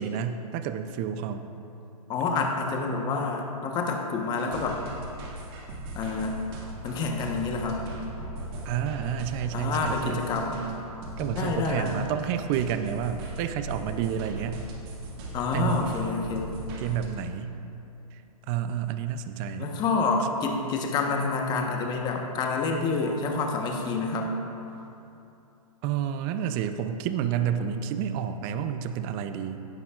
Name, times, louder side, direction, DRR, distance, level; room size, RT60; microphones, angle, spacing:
voice 1, 0.0-1.5 8.6-10.2 11.2-14.7 15.5-15.9 16.8-17.6 18.1-18.2 18.5-19.8 25.8-29.6, right 9 dB, 25° right, 9 dB, 0.4 m, -30 dB
voice 2, 2.1-4.8 5.9-6.4 6.8-7.8 9.5-10.7 11.2-11.9 15.3-16.6 19.6-24.3, left 4 dB, 20° left, 2 dB, 1.0 m, -28 dB
sound 1, 4.4-17.1, right 1 dB, 40° right, 1.9 m, -39 dB
16.0 x 11.0 x 2.4 m, 2.8 s
hypercardioid pair, 140°, 20 cm